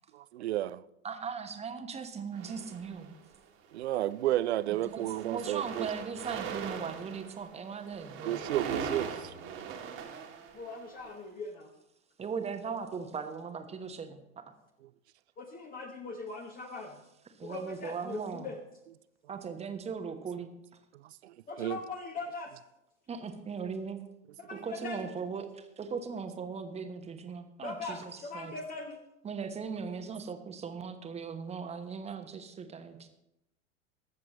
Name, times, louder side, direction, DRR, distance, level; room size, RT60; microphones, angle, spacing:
voice 1, 0.1-0.8 3.7-5.9 8.2-9.3 20.9-21.8, right 14 dB, 60° right, 0.5 m, -32 dB
voice 2, 1.0-3.2 4.8-8.4 12.2-14.5 17.3-18.5 19.3-20.5 23.1-24.0 24.5-28.5 29.2-33.1, right 6 dB, 15° right, 1.1 m, -39 dB
sound 1, 2.3-3.3 4.1-4.3 4.6-11.1, right 6 dB, 35° right, 1.7 m, -40 dB
voice 3, 10.5-11.7 15.4-17.0 17.4-18.6 21.5-22.6 24.4-25.1 27.6-29.0, left 3 dB, 25° left, 1.1 m, -40 dB
21.0 x 7.6 x 3.0 m
figure-of-eight pair, 85°, 37 cm